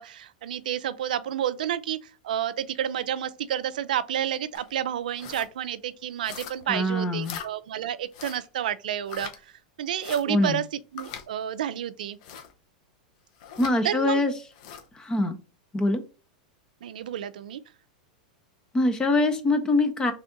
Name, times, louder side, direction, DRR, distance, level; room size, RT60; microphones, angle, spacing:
voice 1, 0.0-2.0 2.2-9.3 9.8-10.6 10.9-12.2 13.8-14.2 16.8-17.6, right 10 dB, 80° right, 0.3 m, -30 dB
sound 1, 4.5-4.7 5.1-5.5 6.2-6.7 7.2-7.5 8.1-8.5 9.1-9.4 10.0-10.2 11.0-11.3 12.2-12.5 13.4-13.8 14.5-14.9, left 8 dB, 60° left, 0.7 m, -40 dB
voice 2, 6.7-7.4 10.3-10.6 13.6-14.3 15.0-15.4 15.7-16.0 18.7-20.1, left 2 dB, 15° left, 0.6 m, -23 dB
3.3 x 2.5 x 3.8 m
hypercardioid pair, 120°, 4 cm